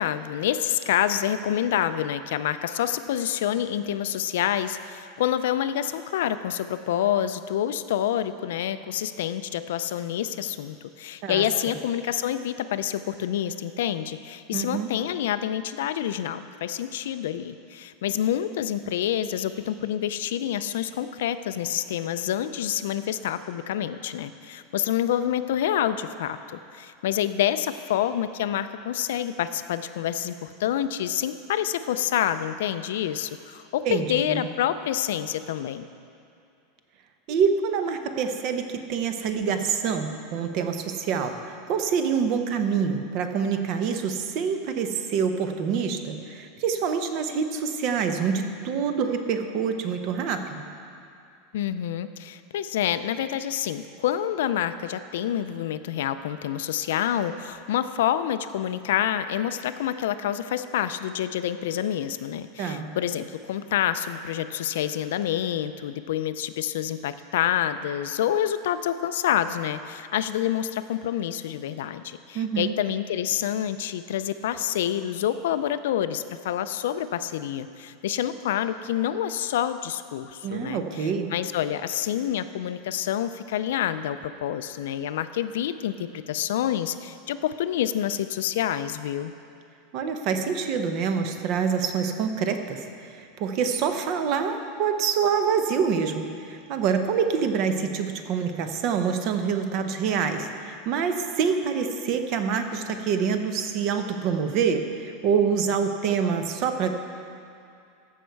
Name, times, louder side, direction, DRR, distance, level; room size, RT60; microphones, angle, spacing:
voice 1, 0.0-35.9 51.5-89.3, left 10 dB, 75° left, 12 dB, 0.4 m, -27 dB
voice 2, 11.2-11.8 14.5-14.9 33.8-34.5 37.3-50.7 62.6-63.0 72.3-72.7 80.4-81.3 89.9-106.9, right 6 dB, 35° right, 7 dB, 0.7 m, -26 dB
14.5 x 6.5 x 4.6 m, 2.5 s
supercardioid pair, 180°, 0 cm